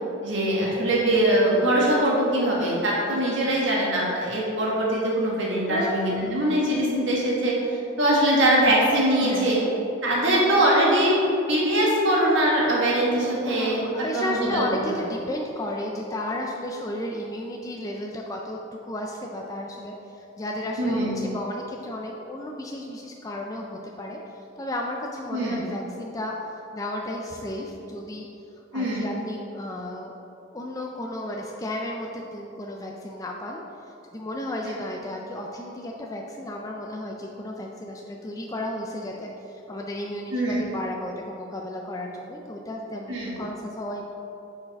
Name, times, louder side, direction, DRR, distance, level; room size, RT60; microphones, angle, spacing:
voice 1, 0.2-9.6 10.0-11.2 11.5-14.9 20.8-21.2 25.3-25.6 28.7-29.1 34.6-34.7 40.3-40.6 43.1-43.4, right 1 dB, 65° right, -4 dB, 1.5 m, -22 dB
voice 2, 5.7-6.5 9.2-9.7 13.5-28.3 28.7-30.2 30.5-33.6 34.1-44.0, left 1 dB, 15° left, 0 dB, 0.4 m, -33 dB
6.3 x 4.9 x 5.2 m, 3.0 s
head